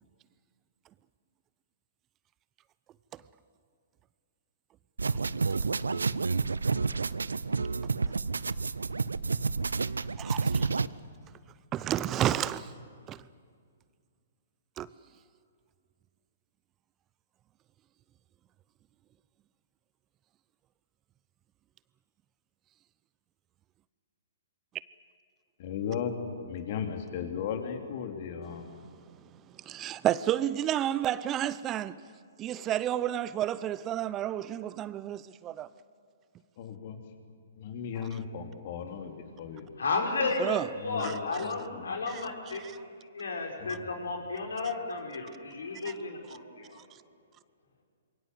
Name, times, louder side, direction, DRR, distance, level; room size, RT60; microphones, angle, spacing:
sound 1, 5.0-10.9, right 4 dB, 85° right, 0.6 m, -29 dB
voice 1, 10.2-10.7 11.7-12.7 13.1-13.2 14.8-14.9 29.7-32.0 32.4-35.7 40.4-40.7 41.0-41.1 42.1-42.3 42.5-42.7 45.8-45.9, right 12 dB, 25° right, 0.6 m, -31 dB
voice 2, 25.6-26.1 26.5-28.7 36.6-37.0 37.6-39.7 40.8-42.0 43.6-43.8, left 7 dB, 50° left, 3.2 m, -36 dB
voice 3, 39.8-40.6 40.8-42.6 43.1-46.8, left 3 dB, 75° left, 5.2 m, -33 dB
26.5 x 22.5 x 8.0 m
hypercardioid pair, 125°, 0 cm